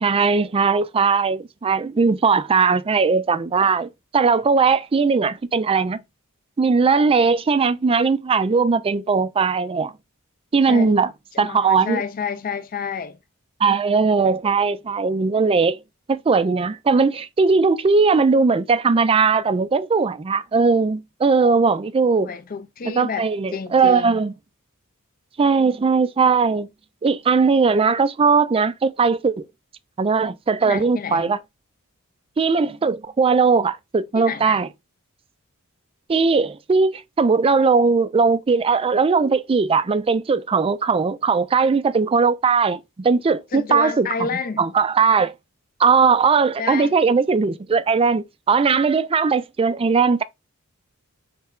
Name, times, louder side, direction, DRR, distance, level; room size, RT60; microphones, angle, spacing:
voice 1, 0.0-6.0 6.6-9.9 10.5-11.1 11.4-12.0 13.6-15.8 16.1-22.3 22.9-24.3 25.4-26.7 27.0-29.5 30.0-31.4 32.4-34.7 36.1-44.3 44.6-45.3 45.8-50.2, right 5 dB, 25° right, 0.3 m, -19 dB
voice 2, 11.5-13.2 22.2-24.2 30.6-31.3 34.1-34.6 43.5-44.6 46.6-46.9, left 5 dB, 40° left, 0.4 m, -29 dB
4.2 x 3.3 x 3.6 m
head